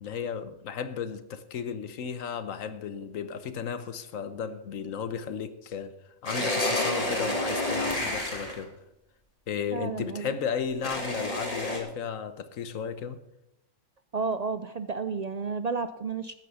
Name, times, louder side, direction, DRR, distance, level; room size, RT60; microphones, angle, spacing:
voice 1, 0.0-5.9 6.2-8.8 9.5-13.2, left 7 dB, 75° left, 1.3 m, -34 dB
sound 1, 6.3-8.6 10.8-11.8, left 1 dB, 25° left, 2.5 m, -29 dB
voice 2, 9.7-10.3 14.1-16.3, right 4 dB, 65° right, 0.4 m, -31 dB
13.5 x 9.8 x 5.6 m
omnidirectional pair, 1.4 m